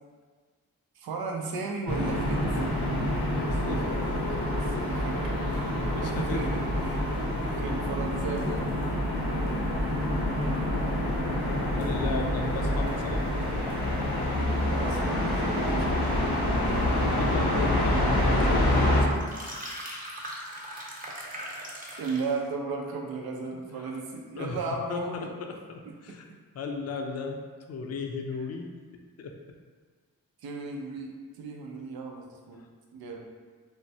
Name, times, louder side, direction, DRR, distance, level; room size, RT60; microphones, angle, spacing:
voice 1, 1.0-2.7 3.5-5.4 6.0-7.0 7.4-8.7 14.7-16.3 22.0-25.3 25.9-26.2 30.4-32.6 32.9-33.3, right 4 dB, 85° right, 1 dB, 0.5 m, -36 dB
sound 1, 1.9-19.0, left 1 dB, 80° left, 0.7 m, -27 dB
voice 2, 3.4-4.0 5.9-6.7 7.1-7.2 11.3-13.3 17.1-19.1 20.6-20.7 24.4-24.6 24.9-25.3 25.7-26.3 26.5-27.4 27.7-28.7 29.2-29.3, left 4 dB, 45° left, 3 dB, 0.4 m, -36 dB
sound 2, 19.1-22.4, equal, 25° right, 0.7 m, -39 dB
3.1 x 2.1 x 2.6 m, 1.5 s
cardioid pair, 45°, 36 cm